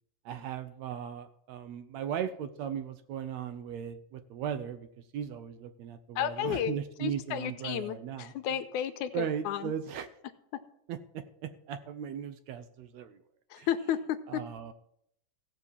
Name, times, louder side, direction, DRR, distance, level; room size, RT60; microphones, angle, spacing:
voice 1, 0.3-4.9 5.1-8.3 9.1-10.1 10.9-13.2 13.6-13.7 14.3-14.7, right 9 dB, 75° right, 10 dB, 1.7 m, -37 dB
voice 2, 6.2-9.7 13.5-14.4, left 10 dB, 80° left, 10 dB, 2.1 m, -33 dB
16.5 x 6.0 x 7.1 m, 0.72 s
omnidirectional pair, 3.6 m